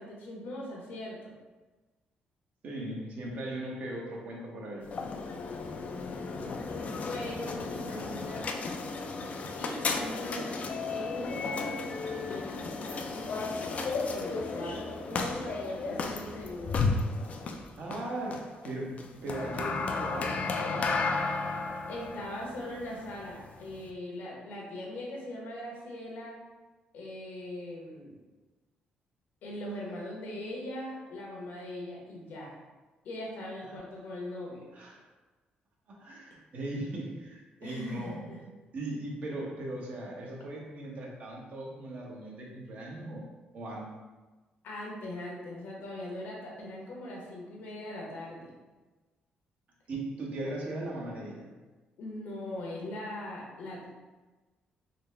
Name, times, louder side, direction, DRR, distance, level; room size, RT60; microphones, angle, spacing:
voice 1, 0.0-1.3 7.0-8.6 9.5-10.7 10.9-11.9 12.1-16.8 21.9-26.4 26.9-28.2 29.4-32.5 33.0-34.7 37.6-38.4 44.6-48.5 52.0-53.9, left 1 dB, 80° left, -2 dB, 1.0 m, -40 dB
voice 2, 2.6-4.9 17.8-20.9 33.6-33.8 34.7-35.0 35.9-38.3 38.7-43.2 43.5-43.9 49.9-51.5, right 1 dB, 55° right, -2 dB, 0.9 m, -38 dB
sound 1, 4.8-23.9, left 4 dB, 45° left, 0.3 m, -34 dB
3.9 x 2.2 x 3.3 m, 1.2 s
cardioid pair, 105°, 3 cm